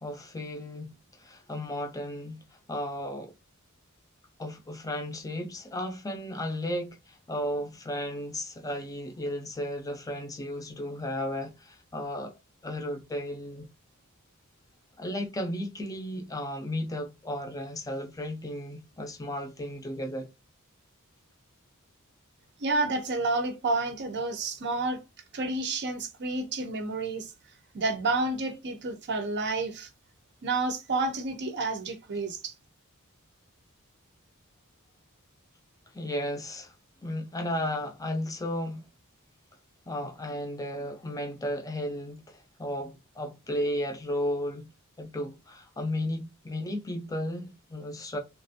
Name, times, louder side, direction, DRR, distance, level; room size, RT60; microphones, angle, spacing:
voice 1, 0.0-2.4 2.7-3.3 4.4-12.3 12.6-13.7 15.0-20.3 35.9-36.7 37.0-38.9 39.9-44.7 45.0-48.2, left 1 dB, 15° left, 0.5 m, -34 dB
voice 2, 22.6-25.0 25.3-27.3 27.7-29.9 30.4-32.5, right 3 dB, 50° right, 0.6 m, -30 dB
3.1 x 2.5 x 2.6 m
head